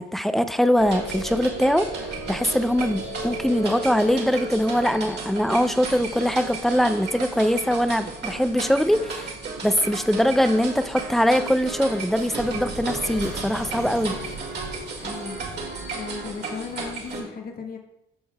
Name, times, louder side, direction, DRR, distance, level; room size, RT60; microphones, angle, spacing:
voice 1, 0.0-1.9 2.3-9.3 9.6-14.1, equal, ahead, 10 dB, 0.5 m, -22 dB
sound 1, 0.8-17.2, right 3 dB, 60° right, 2.1 m, -33 dB
voice 2, 15.0-15.4 15.9-17.8, left 5 dB, 45° left, 3 dB, 1.1 m, -36 dB
14.0 x 5.3 x 2.4 m, 0.86 s
cardioid pair, 90°, 20 cm